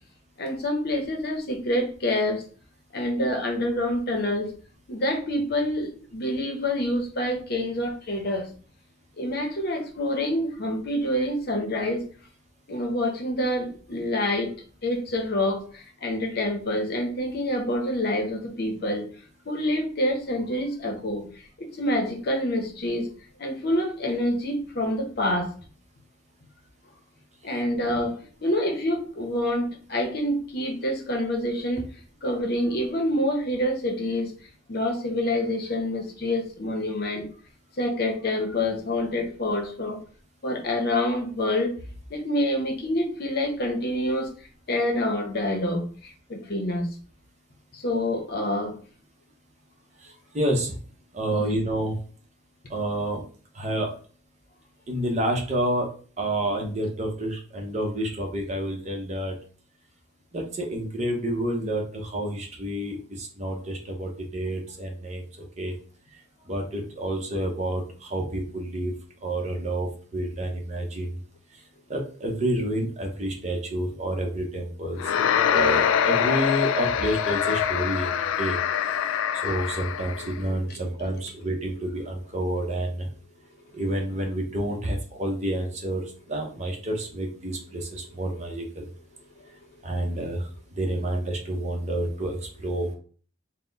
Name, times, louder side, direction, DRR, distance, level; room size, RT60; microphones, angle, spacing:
voice 1, 0.4-2.4 2.9-4.5 4.9-8.5 9.2-12.0 12.7-14.5 14.8-19.1 19.5-21.3 21.6-23.1 23.4-25.5 27.4-31.9 32.2-34.3 34.7-37.3 37.8-40.0 40.4-41.7 42.1-44.3 44.7-46.9 47.7-48.8 51.4-51.7 89.4-89.5, left 1 dB, 50° left, 0.7 m, -27 dB
voice 2, 50.0-50.7 51.1-52.0 52.7-53.2 53.5-53.9 54.9-55.9 56.2-59.3 60.3-65.2 65.6-65.7 66.5-68.9 69.2-71.2 71.9-75.0 75.5-78.1 78.4-78.6 79.4-83.1 83.7-88.8 89.8-90.5 90.8-92.9, right 1 dB, 35° right, 0.8 m, -29 dB
sound 1, 75.0-80.4, left 8 dB, 90° left, 0.3 m, -24 dB
4.1 x 2.1 x 3.9 m
head